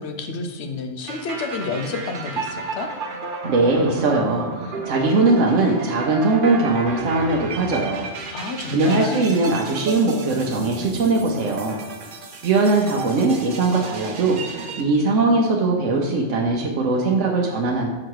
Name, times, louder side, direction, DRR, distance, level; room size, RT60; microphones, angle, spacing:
voice 1, 0.0-2.9 8.3-9.3, left 4 dB, 65° left, 5 dB, 1.0 m, -29 dB
sound 1, 1.1-14.8, right 4 dB, 50° right, 0.8 m, -33 dB
voice 2, 3.5-8.1 8.7-11.8 12.4-17.9, right 3 dB, 80° right, -1 dB, 1.1 m, -20 dB
6.3 x 4.9 x 4.7 m, 1.2 s
omnidirectional pair, 1.3 m